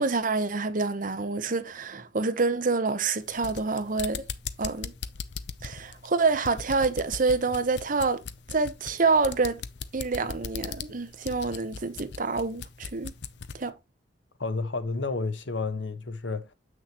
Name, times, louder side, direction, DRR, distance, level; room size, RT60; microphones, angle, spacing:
voice 1, 0.0-4.2 4.6-4.9 5.6-8.2 8.5-9.6 9.9-13.1 13.5-13.7, right 4 dB, 45° right, 0.9 m, -27 dB
sound 1, 3.2-13.6, left 6 dB, 65° left, 0.6 m, -39 dB
voice 2, 14.4-16.5, left 3 dB, 90° left, 1.1 m, -31 dB
7.4 x 6.4 x 3.0 m
head